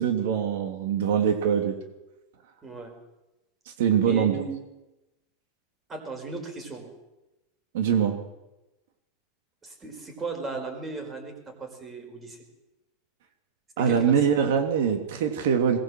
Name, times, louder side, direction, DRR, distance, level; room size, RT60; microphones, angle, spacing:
voice 1, 0.0-1.7 3.8-4.4 7.7-8.2 13.8-15.8, right 8 dB, 75° right, 6 dB, 2.9 m, -23 dB
voice 2, 4.1-4.6 5.9-6.9 9.6-12.4 13.8-14.2, right 4 dB, 15° right, 5 dB, 4.9 m, -36 dB
22.0 x 20.0 x 7.7 m, 0.97 s
supercardioid pair, 155°, 0 cm